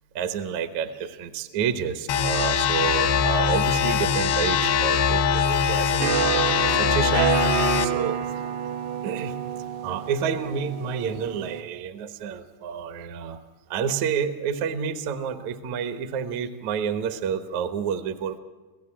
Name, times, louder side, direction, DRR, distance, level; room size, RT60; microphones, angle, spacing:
voice 1, 0.2-8.2 9.0-9.4 9.8-13.4 13.7-18.4, right 7 dB, 65° right, 9 dB, 1.9 m, -29 dB
sound 1, 2.1-7.9, left 7 dB, 85° left, 3.5 m, -22 dB
sound 2, 6.0-11.6, right 9 dB, 85° right, 3.2 m, -28 dB
27.5 x 16.5 x 8.7 m, 1.4 s
omnidirectional pair, 4.7 m